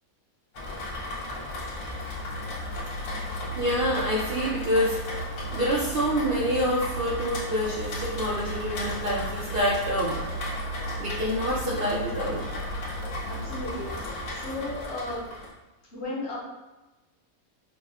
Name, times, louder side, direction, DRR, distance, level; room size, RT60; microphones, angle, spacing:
Rain, 0.5-15.5, left 1 dB, 85° left, 1.2 m, -36 dB
Musical instrument, 1.8-13.8, right 2 dB, 75° right, 1.8 m, -38 dB
voice 1, 3.1-5.2 5.5-10.2 11.0-12.4, equal, 60° right, -6 dB, 0.6 m, -27 dB
voice 2, 13.2-15.2 15.9-16.4, left 2 dB, 50° left, -7 dB, 1.2 m, -35 dB
4.9 x 2.1 x 2.4 m, 1.1 s
omnidirectional pair, 1.5 m